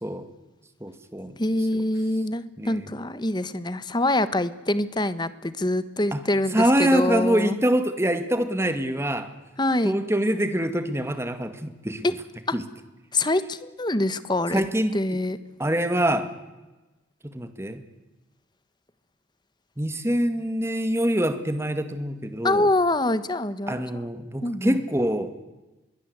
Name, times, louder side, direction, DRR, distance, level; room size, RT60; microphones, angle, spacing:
voice 1, 0.8-1.3 1.7-1.8 2.6-2.9 6.1-6.2 6.5-9.3 9.8-12.1 12.5-12.6 14.5-15.2 15.6-16.3 17.2-17.8 19.8-22.7 23.7-25.3, right 1 dB, 15° right, 9 dB, 2.0 m, -25 dB
voice 2, 1.4-7.6 9.6-10.0 12.0-12.1 12.5-12.6 13.1-14.6 14.9-15.4 22.4-24.0 24.4-24.8, left 1 dB, 25° left, 14 dB, 1.2 m, -25 dB
26.5 x 22.0 x 8.2 m, 1.1 s
head